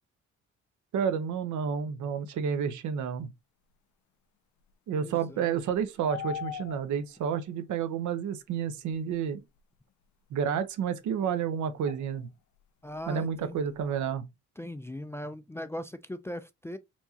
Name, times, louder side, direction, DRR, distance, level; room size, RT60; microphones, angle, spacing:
voice 1, 0.9-3.3 4.9-9.4 10.3-12.3 13.1-14.2, right 7 dB, 75° right, 0.7 m, -30 dB
voice 2, 4.9-5.6 12.8-13.6 14.6-16.8, left 1 dB, 10° left, 0.3 m, -39 dB
sound 1, 5.6-7.2 9.6-9.7 11.8-12.2 12.6-12.7 12.9-13.9, left 9 dB, 70° left, 0.5 m, -40 dB
4.5 x 2.8 x 2.8 m
cardioid pair, 90°, 30 cm